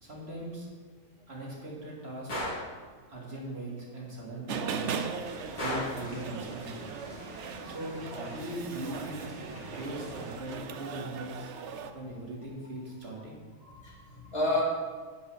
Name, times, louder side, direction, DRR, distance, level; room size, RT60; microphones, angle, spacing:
voice 1, 0.0-0.7 1.3-2.3 3.1-5.0 5.5-6.9 7.6-9.4 9.6-11.5 11.9-13.3, right 1 dB, 45° right, -4 dB, 2.7 m, -40 dB
Gunshot gunfire, 2.3-2.7 5.6-6.1, left 1 dB, 85° left, 3.0 m, -33 dB
sound 1, 4.5-11.9, right 6 dB, 60° right, 0.9 m, -39 dB
sound 2, 5.2-10.4, right 1 dB, 30° right, 1.9 m, -46 dB
voice 2, 13.6-14.6, left 2 dB, 40° left, -6 dB, 3.2 m, -32 dB
9.7 x 5.4 x 6.4 m, 1.5 s
omnidirectional pair, 1.5 m